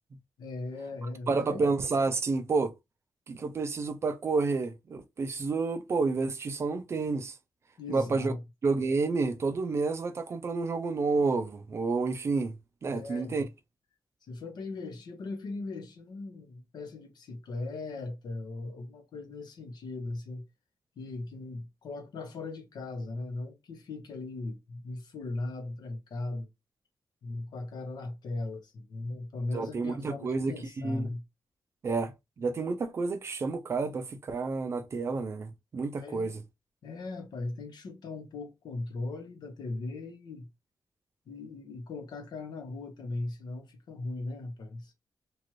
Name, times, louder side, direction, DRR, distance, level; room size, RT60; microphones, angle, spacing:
voice 1, 0.4-1.7 7.8-8.4 12.9-13.4 14.3-20.4 21.0-26.5 27.2-31.2 36.0-36.3 36.8-40.5 41.3-44.9, left 2 dB, 70° left, 0.9 m, -38 dB
voice 2, 1.3-2.7 3.3-7.4 7.9-8.3 8.6-12.6 12.8-13.4 29.5-31.1 31.8-36.4, right 4 dB, 35° right, 0.4 m, -30 dB
3.0 x 2.5 x 3.0 m
wide cardioid pair, 180°, 7 cm